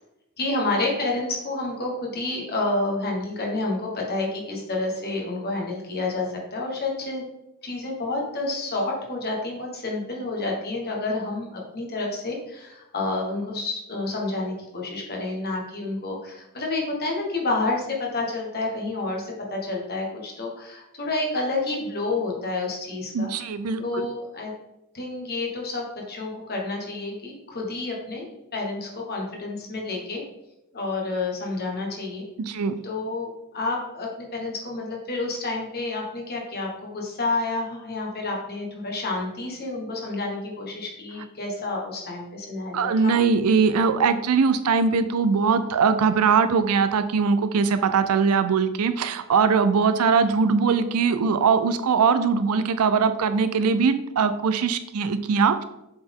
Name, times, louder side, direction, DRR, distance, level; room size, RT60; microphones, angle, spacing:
voice 1, 0.4-7.2 7.6-17.9 18.1-23.3 23.8-24.5 24.9-28.2 28.5-30.2 30.7-32.2 32.8-43.2, left 2 dB, 45° left, -1 dB, 1.5 m, -29 dB
voice 2, 23.1-24.1 32.4-32.8 42.7-55.6, right 5 dB, 80° right, 10 dB, 0.4 m, -21 dB
7.7 x 4.2 x 3.6 m, 0.90 s
head